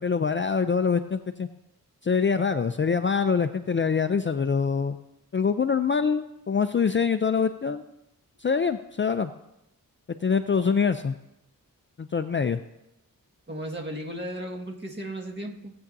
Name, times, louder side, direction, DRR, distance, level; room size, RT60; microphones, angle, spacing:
voice 1, 0.0-1.5 2.0-5.0 5.3-7.8 8.4-9.3 10.1-11.1 12.0-12.6, left 5 dB, 35° left, 9 dB, 0.4 m, -24 dB
voice 2, 13.5-15.7, right 1 dB, 30° right, -1 dB, 1.7 m, -35 dB
17.5 x 8.6 x 2.7 m, 0.85 s
wide cardioid pair, 90°, 35 cm